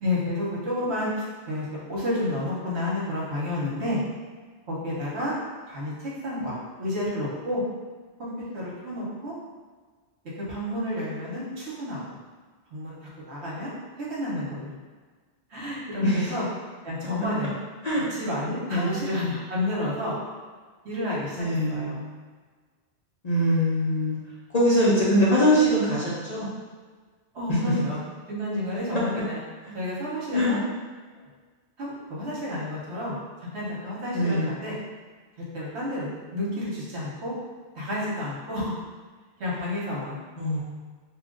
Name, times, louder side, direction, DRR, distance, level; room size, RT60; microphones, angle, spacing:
voice 1, 0.0-4.0 4.7-5.3 5.7-7.6 8.2-9.3 10.5-12.2 12.7-13.0 13.3-13.7 14.0-14.8 15.5-16.4 16.8-17.5 18.0-20.1 20.8-22.0 27.3-28.0 28.3-29.4 29.7-30.6 31.8-33.2 33.5-34.8 35.5-37.4 37.7-38.7 39.4-40.2, left 1 dB, 70° right, -6 dB, 1.2 m, -30 dB
voice 2, 16.0-16.3 17.8-18.1 18.7-19.0 21.4-22.0 23.2-24.2 24.5-26.5 27.5-27.7 29.6-29.7 30.3-30.6 34.1-34.5 40.4-40.6, equal, 45° left, -7 dB, 0.6 m, -23 dB
2.8 x 2.5 x 3.7 m, 1.5 s
omnidirectional pair, 1.2 m